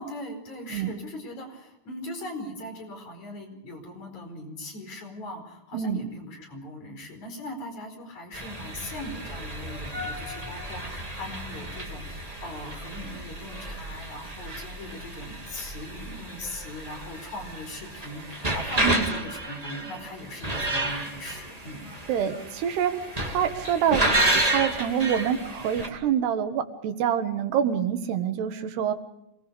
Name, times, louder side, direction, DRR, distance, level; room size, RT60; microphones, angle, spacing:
voice 1, 0.0-21.9, left 1 dB, 45° left, 3 dB, 5.9 m, -40 dB
sound 1, 8.3-25.9, right 1 dB, 15° right, 1.4 m, -31 dB
voice 2, 22.1-23.0 23.3-24.1 24.3-28.9, right 9 dB, 85° right, 8 dB, 3.6 m, -26 dB
27.0 x 20.5 x 5.2 m, 0.85 s
omnidirectional pair, 4.6 m